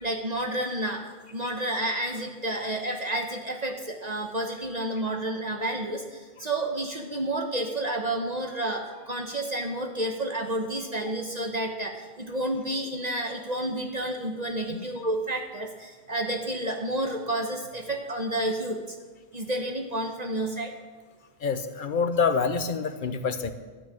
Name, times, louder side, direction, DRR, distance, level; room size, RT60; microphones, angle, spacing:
voice 1, 0.0-1.0 1.3-6.0 6.4-18.8 19.3-20.7, right 1 dB, 40° right, 2 dB, 1.1 m, -30 dB
voice 2, 21.4-23.5, left 5 dB, 55° left, 10 dB, 0.9 m, -26 dB
12.0 x 6.5 x 8.6 m, 1.4 s
omnidirectional pair, 1.1 m